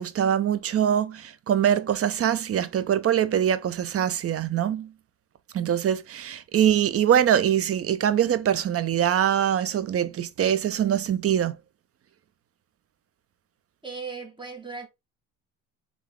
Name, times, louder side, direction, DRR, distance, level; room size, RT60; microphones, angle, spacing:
voice 1, 0.0-4.9 5.5-11.6, right 9 dB, 35° right, 0.6 m, -23 dB
voice 2, 13.8-14.9, right 4 dB, 10° right, 1.6 m, -37 dB
3.6 x 3.6 x 3.5 m
supercardioid pair, 85°, 40 cm